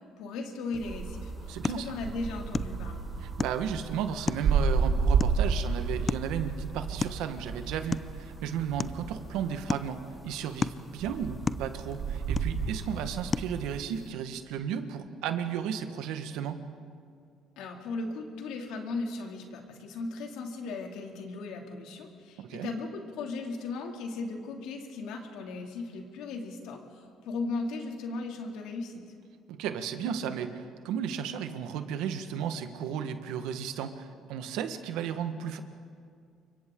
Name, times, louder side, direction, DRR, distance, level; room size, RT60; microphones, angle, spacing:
voice 1, 0.2-1.3 1.6-3.0 17.6-29.0, left 3 dB, 85° left, 2 dB, 2.6 m, -37 dB
sound 1, 0.7-14.1, left 4 dB, 25° left, 0.5 m, -38 dB
sound 2, 0.8-10.5 11.0-13.8, right 5 dB, 50° right, 1.5 m, -32 dB
voice 2, 1.5-1.9 3.2-16.6 22.4-22.7 29.5-35.6, right 8 dB, 90° right, 8 dB, 1.4 m, -34 dB
29.0 x 24.5 x 3.8 m, 2.2 s
cardioid pair, 105°, 0 cm